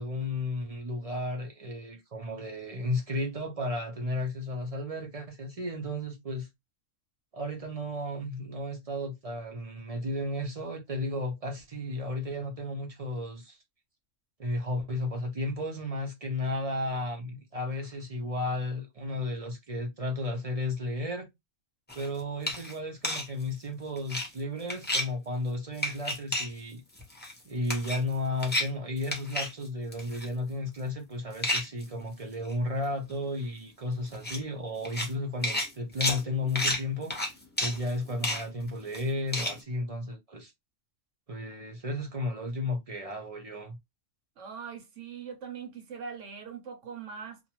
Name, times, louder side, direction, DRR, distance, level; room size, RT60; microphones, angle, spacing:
voice 1, 0.0-6.5 7.3-13.6 14.4-21.3 21.9-26.8 27.5-37.1 37.6-40.5 41.3-43.8, left 1 dB, 45° right, 0.5 m, -33 dB
sound 1, 21.9-22.1 22.5-22.7 23.0-23.3 24.0-24.3 24.7-25.1 25.8-26.5 27.0-27.4 27.7-28.1 28.4-28.7 29.0-29.5 29.9-30.3 31.4-31.8 32.5-32.6 32.8-32.9 33.1-33.2 34.1-34.4 34.8-35.1 35.4-39.6, left 1 dB, 10° left, 0.6 m, -31 dB
voice 2, 44.4-47.4, right 6 dB, 70° right, 1.1 m, -41 dB
2.6 x 2.2 x 2.9 m
omnidirectional pair, 1.3 m